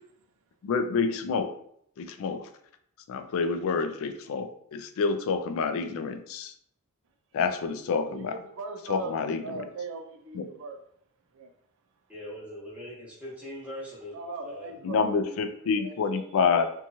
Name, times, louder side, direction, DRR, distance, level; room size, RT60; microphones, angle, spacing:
voice 1, 0.6-1.5 2.0-2.5 3.1-6.5 7.3-8.3 8.9-9.6 10.3-10.4 14.8-16.7, left 5 dB, 65° left, 0.3 m, -28 dB
voice 2, 8.1-9.2 9.4-10.8 11.3-11.5 14.1-16.3, right 3 dB, 60° right, 0.4 m, -40 dB
voice 3, 12.1-14.2 14.4-14.7, equal, 5° right, 0.9 m, -41 dB
2.9 x 2.2 x 2.6 m
head